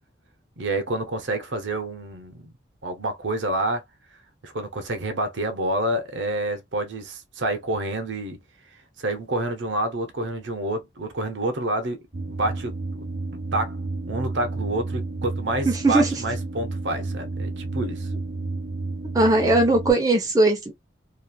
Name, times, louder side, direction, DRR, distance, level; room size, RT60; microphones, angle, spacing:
voice 1, 0.6-2.5 2.8-3.8 4.4-8.4 9.0-13.0 13.5-13.7 14.0-18.1, right 1 dB, 75° right, 0.8 m, -28 dB
sound 1, 12.1-19.9, right 3 dB, 40° right, 1.0 m, -31 dB
voice 2, 19.1-20.7, right 2 dB, 20° right, 0.6 m, -19 dB
3.0 x 2.4 x 2.2 m
head